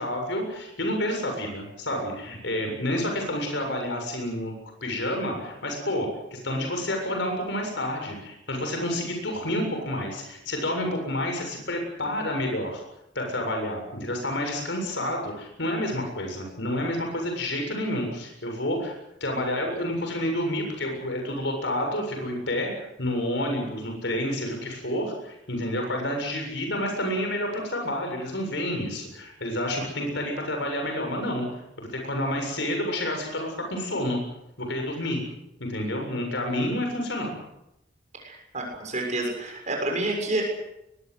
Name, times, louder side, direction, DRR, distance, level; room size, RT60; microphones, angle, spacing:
voice 1, 0.0-4.5 4.8-12.8 13.2-31.5 31.8-34.2 34.6-35.2 35.6-37.3, left 1 dB, 70° left, 3 dB, 7.3 m, -29 dB
voice 2, 38.2-40.4, right 2 dB, 40° right, 1 dB, 6.8 m, -29 dB
22.5 x 22.5 x 8.2 m, 0.87 s
head